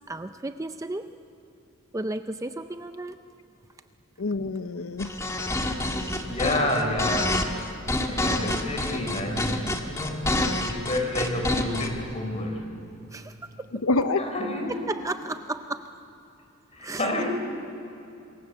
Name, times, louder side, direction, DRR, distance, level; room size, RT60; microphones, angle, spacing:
voice 1, 0.1-1.1 1.9-3.2 13.1-13.7 14.7-15.9 16.8-17.3, right 2 dB, 15° right, 9 dB, 0.5 m, -34 dB
voice 2, 4.2-5.1 6.4-6.7 13.8-14.2, left 3 dB, 75° left, 9 dB, 0.8 m, -26 dB
sound 1, 5.0-11.9, left 1 dB, 15° left, 1.6 m, -27 dB
voice 3, 6.2-7.6 8.1-12.7 14.2-14.8 16.7-17.3, left 1 dB, 30° left, 3 dB, 3.8 m, -29 dB
26.5 x 22.5 x 7.1 m, 2.8 s
head